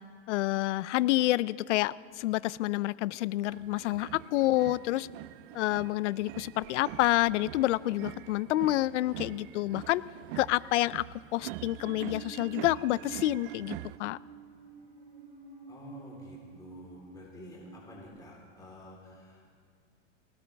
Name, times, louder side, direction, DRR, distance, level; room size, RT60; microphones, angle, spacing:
voice 1, 0.3-5.1 5.5-10.0 10.4-11.1 11.3-14.2, left 17 dB, 75° left, 20 dB, 0.5 m, -28 dB
sound 1, 3.5-14.0, right 16 dB, 50° right, 0.5 m, -44 dB
Musical instrument, 11.2-18.1, right 5 dB, 20° right, 4.4 m, -50 dB
voice 2, 15.7-19.6, left 1 dB, 10° left, -5 dB, 3.6 m, -50 dB
19.5 x 17.0 x 3.4 m, 2.1 s
supercardioid pair, 135°, 35 cm